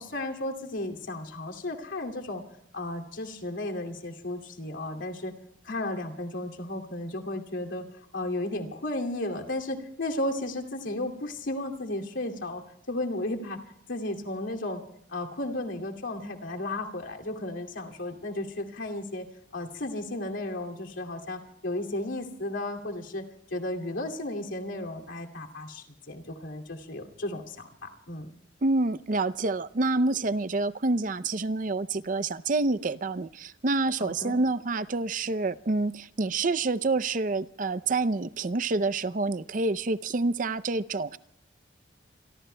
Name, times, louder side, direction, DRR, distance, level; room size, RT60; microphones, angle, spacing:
voice 1, 0.0-2.4 2.7-5.3 5.6-7.8 8.1-12.6 12.9-13.6 13.9-14.8 15.1-19.3 19.5-28.3 34.0-34.4, left 1 dB, 85° left, 2 dB, 2.5 m, -34 dB
voice 2, 28.6-41.2, right 3 dB, 45° right, 14 dB, 0.5 m, -27 dB
27.5 x 23.5 x 2.2 m, 0.73 s
head